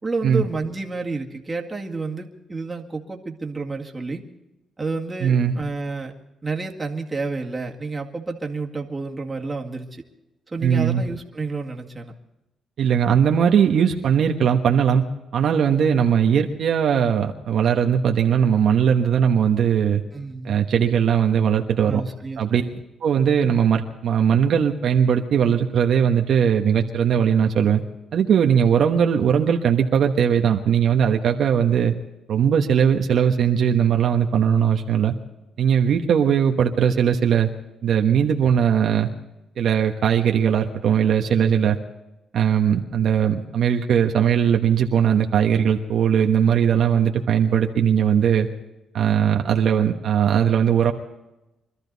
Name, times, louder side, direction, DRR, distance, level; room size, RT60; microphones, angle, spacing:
voice 1, 0.0-4.2 4.8-6.1 6.4-10.0 10.5-12.1 20.1-20.6 21.8-22.8, right 3 dB, 20° right, 0 dB, 2.1 m, -30 dB
voice 2, 5.2-5.5 10.6-11.0 12.8-15.0 15.3-20.0 20.4-22.0 22.4-22.6 23.0-27.8 28.1-31.9 32.3-35.1 35.6-37.5 37.8-39.1 39.6-41.8 42.3-48.5 48.9-50.9, right 8 dB, 65° right, 3 dB, 1.2 m, -19 dB
24.0 x 13.0 x 4.1 m, 0.94 s
cardioid pair, 90°, 0 cm